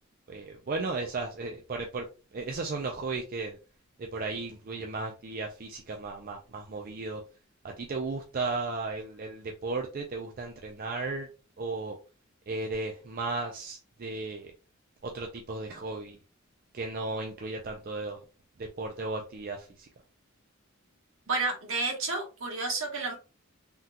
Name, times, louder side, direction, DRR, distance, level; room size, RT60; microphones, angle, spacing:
voice 1, 0.3-2.1 2.3-3.6 4.0-7.2 7.8-11.3 11.6-12.0 12.5-14.5 15.0-16.2 16.7-18.2 18.8-19.7, right 3 dB, 45° right, 2 dB, 0.4 m, -35 dB
voice 2, 21.3-23.1, right 3 dB, 75° right, 1 dB, 1.1 m, -30 dB
3.6 x 2.3 x 2.8 m, 0.33 s
head